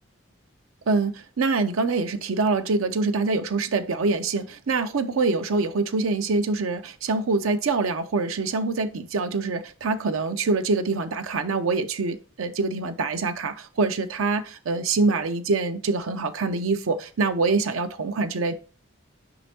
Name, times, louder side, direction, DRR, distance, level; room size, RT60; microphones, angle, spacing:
voice 1, 0.9-18.5, right 3 dB, 85° right, 0.6 m, -25 dB
6.9 x 5.0 x 2.7 m
head